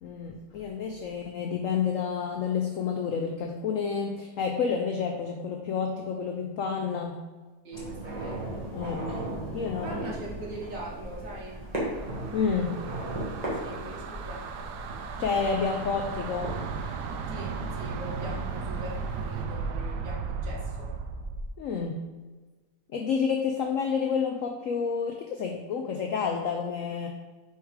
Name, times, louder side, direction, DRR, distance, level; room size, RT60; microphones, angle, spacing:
voice 1, 0.0-7.2 8.7-9.3 9.5-10.1 12.3-12.8 15.2-16.6 21.6-22.1 22.9-27.1, left 6 dB, 80° left, 2 dB, 0.7 m, -29 dB
voice 2, 7.6-8.5 9.8-11.6 13.5-14.7 17.3-20.9, right 1 dB, 50° right, -3 dB, 1.5 m, -41 dB
sound 1, 7.7-19.4, right 1 dB, 25° right, 1.5 m, -37 dB
sound 2, 11.8-21.5, right 5 dB, 75° right, 1.1 m, -36 dB
4.6 x 4.5 x 4.8 m, 1.3 s
omnidirectional pair, 1.9 m